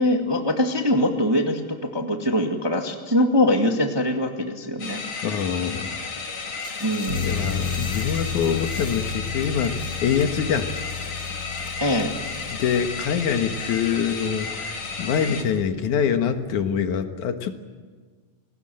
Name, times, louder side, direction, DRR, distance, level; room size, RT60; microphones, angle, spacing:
voice 1, 0.0-5.0 6.8-7.3 11.8-12.1, left 1 dB, 10° right, 3 dB, 1.2 m, -23 dB
sound 1, 4.8-15.4, left 4 dB, 45° left, 3.2 m, -33 dB
voice 2, 5.2-6.0 6.4-6.5 7.2-10.7 12.5-17.6, left 7 dB, 75° left, 7 dB, 2.8 m, -25 dB
sound 2, 6.6-13.1, left 2 dB, 20° left, 2.7 m, -45 dB
sound 3, 7.1-16.8, left 6 dB, 35° right, 6.1 m, -34 dB
28.5 x 19.5 x 7.7 m, 1.5 s
omnidirectional pair, 3.6 m